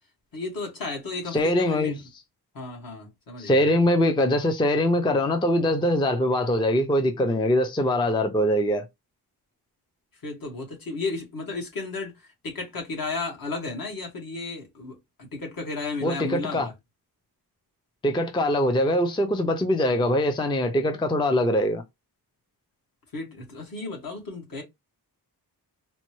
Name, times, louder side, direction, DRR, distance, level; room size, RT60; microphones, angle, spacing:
voice 1, 0.3-2.0 2.5-3.7 10.2-16.7 23.1-24.6, left 3 dB, 60° left, 1.7 m, -34 dB
voice 2, 1.3-2.0 3.4-8.9 16.0-16.7 18.0-21.8, left 1 dB, 15° left, 0.4 m, -23 dB
4.2 x 2.1 x 3.0 m
wide cardioid pair, 155°, 39 cm